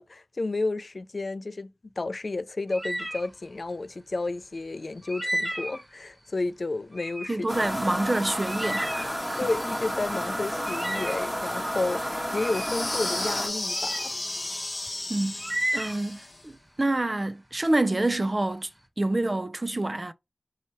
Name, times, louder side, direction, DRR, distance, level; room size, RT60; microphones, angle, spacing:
voice 1, 0.0-1.7 2.0-7.5 9.4-14.1, left 3 dB, 75° left, 0.3 m, -31 dB
sound 1, 2.7-3.3 5.0-5.9 6.9-7.3 7.8-7.9 8.4-9.9 10.6-11.3 12.3-12.8 13.6-14.1 15.4-16.2, right 1 dB, 25° right, 1.4 m, -33 dB
voice 2, 7.3-9.5 15.1-15.4 15.7-18.7 19.0-20.1, right 2 dB, 40° right, 0.4 m, -27 dB
sound 2, 7.5-13.5, equal, ahead, 1.1 m, -31 dB
sound 3, 12.4-16.4, left 2 dB, 50° left, 0.7 m, -33 dB
4.6 x 2.8 x 3.0 m
wide cardioid pair, 60°, 0 cm